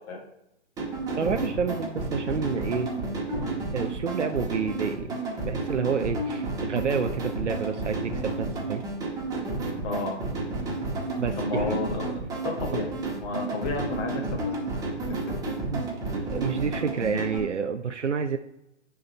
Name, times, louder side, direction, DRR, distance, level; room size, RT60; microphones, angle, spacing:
sound 1, 0.8-17.4, right 2 dB, 10° right, 1.5 m, -31 dB
voice 1, 1.1-2.9 3.7-8.8 11.2-11.8 15.7-18.4, right 6 dB, 85° right, 6 dB, 0.8 m, -29 dB
voice 2, 9.8-10.2 11.3-12.1 12.4-14.9, left 4 dB, 25° left, 0 dB, 1.7 m, -32 dB
10.0 x 3.7 x 4.4 m, 0.86 s
figure-of-eight pair, 140°, 35 cm